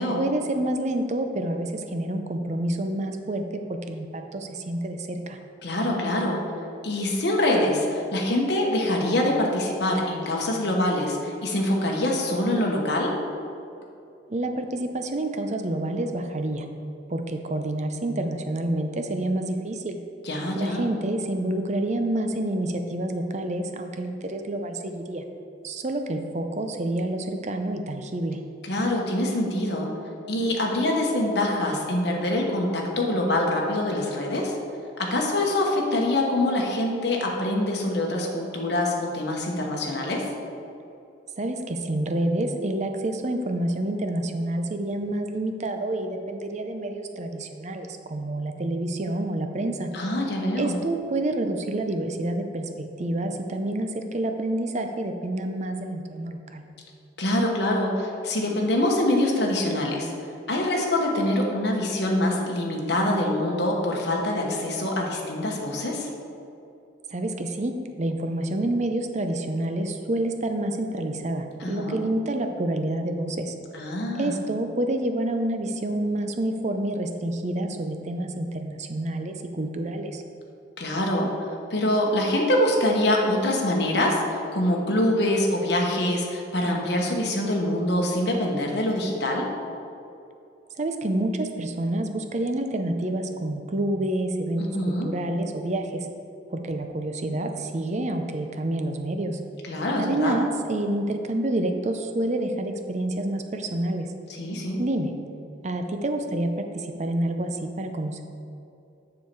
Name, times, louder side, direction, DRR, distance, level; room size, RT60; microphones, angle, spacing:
voice 1, 0.1-3.4 3.7-5.4 14.3-16.7 17.1-20.0 20.5-25.2 25.6-28.4 41.4-49.9 50.6-56.6 67.1-73.5 74.1-80.2 90.8-96.1 96.5-99.4 100.0-104.1 104.8-105.1 105.6-108.2, right 1 dB, 40° right, 6 dB, 0.6 m, -28 dB
voice 2, 5.6-6.4 6.8-13.2 20.2-20.8 28.6-29.9 30.3-34.5 35.0-40.3 49.9-50.8 57.2-60.1 60.5-66.1 71.6-72.0 73.7-74.4 80.8-81.3 81.7-89.5 94.6-95.1 99.6-100.4 104.3-104.8, left 1 dB, 65° left, 0 dB, 1.2 m, -24 dB
7.2 x 6.6 x 4.6 m, 2.6 s
head